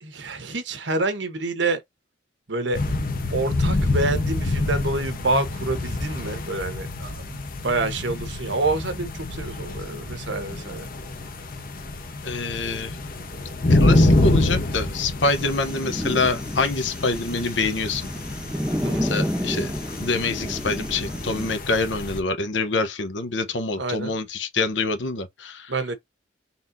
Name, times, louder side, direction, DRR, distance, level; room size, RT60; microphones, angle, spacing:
voice 1, 0.0-1.8 2.5-2.8 3.3-10.9 18.8-19.1 23.8-24.1 25.7-25.9, right 2 dB, 80° right, 1.2 m, -27 dB
sound 1, 2.7-22.2, left 2 dB, 50° left, 1.0 m, -26 dB
voice 2, 12.2-13.0 13.7-18.1 19.0-19.7 20.0-25.7, left 3 dB, 80° left, 1.0 m, -26 dB
sound 2, 15.2-21.6, equal, 5° right, 0.8 m, -30 dB
4.2 x 3.7 x 2.7 m
head